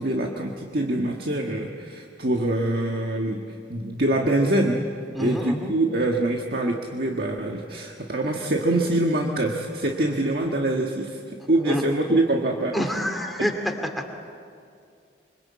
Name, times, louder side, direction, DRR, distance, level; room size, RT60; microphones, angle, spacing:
voice 1, 0.0-4.8 5.2-12.8, right 1 dB, 55° right, 1 dB, 1.7 m, -24 dB
voice 2, 5.1-5.7 11.6-11.8 12.7-13.5 14.0-14.1, equal, ahead, 2 dB, 2.5 m, -27 dB
26.0 x 25.5 x 8.7 m, 2.4 s
head